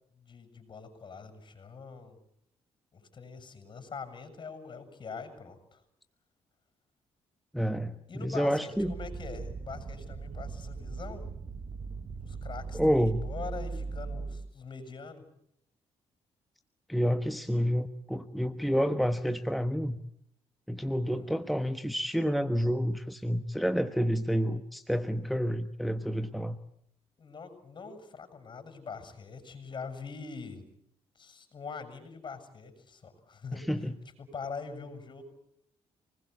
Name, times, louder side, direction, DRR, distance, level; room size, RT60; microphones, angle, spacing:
voice 1, 0.2-2.2 2.9-5.8 8.1-11.2 12.2-15.2 21.1-21.3 27.2-30.6 31.1-33.7 34.2-35.2, left 5 dB, 45° left, 9 dB, 7.7 m, -43 dB
voice 2, 7.5-8.9 12.7-13.2 16.9-20.0 20.7-26.6 33.5-33.9, equal, ahead, 8 dB, 1.2 m, -29 dB
sound 1, 8.7-14.5, right 4 dB, 40° right, 1.2 m, -39 dB
27.0 x 20.5 x 8.3 m, 0.74 s
cardioid pair, 80°, 11 cm